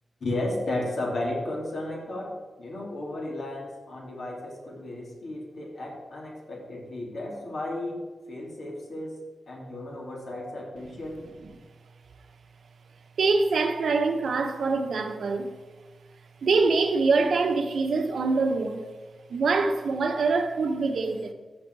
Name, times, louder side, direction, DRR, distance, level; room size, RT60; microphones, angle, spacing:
voice 1, 0.2-8.0 8.3-11.2, left 1 dB, 65° left, 3.3 m, -34 dB
voice 2, 13.2-15.5 16.4-18.9 19.3-21.3, right 4 dB, 75° right, 1.1 m, -24 dB
14.0 x 5.9 x 4.8 m
wide cardioid pair, 130°, 0 cm